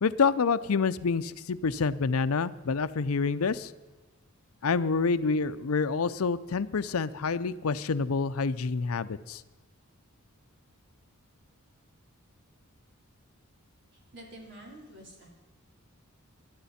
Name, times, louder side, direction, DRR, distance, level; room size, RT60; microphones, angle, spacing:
voice 1, 0.0-3.7 4.6-9.4, left 4 dB, 85° left, 14 dB, 0.6 m, -27 dB
voice 2, 13.9-15.3, right 1 dB, 55° right, -1 dB, 3.9 m, -48 dB
19.5 x 12.5 x 4.3 m, 1.2 s
head